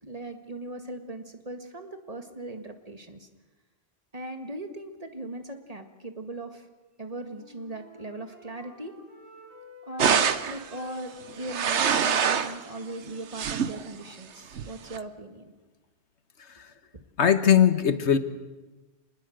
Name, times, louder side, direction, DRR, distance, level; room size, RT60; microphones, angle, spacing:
voice 1, 0.0-3.3 4.1-6.7 7.0-9.0 9.9-15.5, right 2 dB, 35° right, 6 dB, 1.9 m, -39 dB
Wind instrument woodwind instrument, 7.0-10.1 10.4-14.2, left 1 dB, 55° right, 6.8 m, -51 dB
sound 1, 10.0-10.6 11.3-12.6 13.1-13.8 14.6-15.0, right 7 dB, 80° right, 1.3 m, -25 dB
voice 2, 17.2-18.2, left 8 dB, 80° left, 11 dB, 1.5 m, -19 dB
26.0 x 21.0 x 7.9 m, 1.2 s
omnidirectional pair, 1.1 m